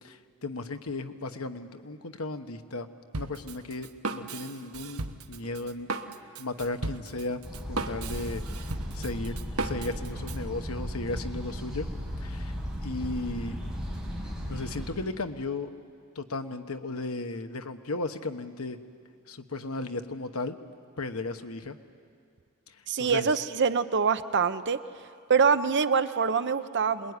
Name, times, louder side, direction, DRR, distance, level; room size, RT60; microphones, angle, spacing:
voice 1, 0.0-2.9 3.1-5.9 6.4-7.4 7.7-8.4 8.9-9.3 9.6-11.9 12.2-12.5 12.8-13.6 14.5-15.7 16.1-18.8 19.3-20.6 21.0-21.8 22.7-23.3, left 2 dB, 85° left, 7 dB, 1.2 m, -35 dB
Drum kit, 3.1-10.4, right 3 dB, 85° right, 1.2 m, -36 dB
sound 1, 7.4-14.9, equal, ahead, 6.5 m, -36 dB
voice 2, 22.9-24.8 25.3-27.2, right 6 dB, 55° right, 11 dB, 0.8 m, -25 dB
26.5 x 21.0 x 9.7 m, 2.3 s
head